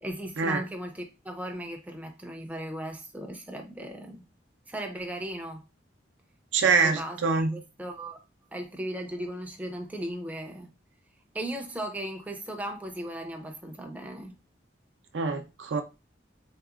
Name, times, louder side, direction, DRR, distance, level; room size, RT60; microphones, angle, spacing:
voice 1, 0.0-4.2 4.7-5.6 6.6-8.2 8.5-10.7 11.3-14.3, right 1 dB, 10° right, 0.4 m, -37 dB
voice 2, 6.5-7.5 15.1-15.8, right 4 dB, 85° right, 0.5 m, -25 dB
3.8 x 2.8 x 2.4 m
head